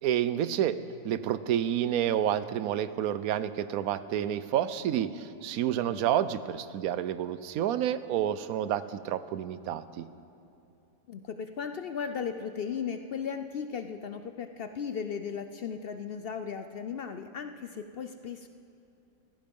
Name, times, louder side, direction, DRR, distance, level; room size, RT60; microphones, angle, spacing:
voice 1, 0.0-0.8 1.0-10.1, right 10 dB, 75° right, 14 dB, 1.1 m, -29 dB
voice 2, 11.1-18.5, left 6 dB, 65° left, 8 dB, 0.5 m, -36 dB
15.5 x 15.5 x 5.3 m, 2.8 s
omnidirectional pair, 1.6 m